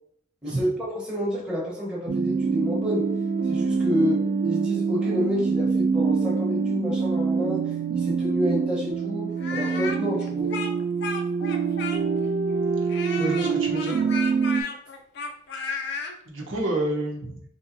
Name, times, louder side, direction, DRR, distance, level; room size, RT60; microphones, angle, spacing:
voice 1, 0.4-3.1 3.4-10.5, equal, 5° right, -5 dB, 0.9 m, -29 dB
sound 1, 2.1-14.6, right 5 dB, 50° right, 0.3 m, -25 dB
Speech, 9.4-12.3 12.9-16.1, left 4 dB, 60° left, 0.5 m, -33 dB
voice 2, 13.2-14.0 16.3-17.4, right 1 dB, 85° right, -2 dB, 0.9 m, -29 dB
3.6 x 2.8 x 2.6 m, 0.67 s
head